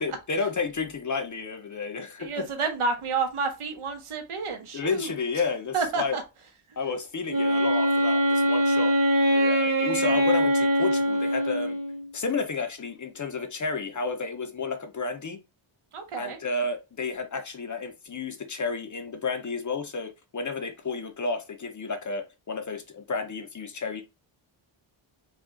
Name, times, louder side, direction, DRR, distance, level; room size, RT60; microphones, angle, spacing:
voice 1, 0.0-2.5 4.7-6.2 6.8-9.0 9.3-11.8 12.1-15.4 16.2-24.0, left 4 dB, 35° left, 0.7 m, -31 dB
voice 2, 2.2-5.2 5.7-6.2 10.0-10.2 15.9-16.4, right 4 dB, 80° right, 1.2 m, -30 dB
Wind instrument woodwind instrument, 7.3-12.1, equal, 40° right, 1.2 m, -23 dB
5.0 x 2.4 x 3.7 m
wide cardioid pair, 165°, 50 cm